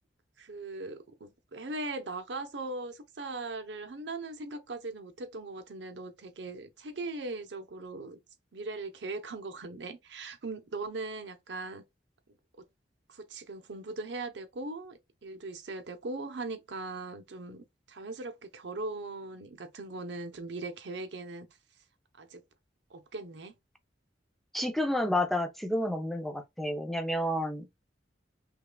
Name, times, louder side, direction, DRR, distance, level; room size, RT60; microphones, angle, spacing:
voice 1, 0.4-8.2 8.5-11.8 12.6-12.7 13.1-21.5 22.2-22.4 22.9-23.6, right 3 dB, 70° right, 0.7 m, -39 dB
voice 2, 24.5-27.7, left 1 dB, ahead, 0.5 m, -30 dB
5.4 x 2.3 x 2.2 m
head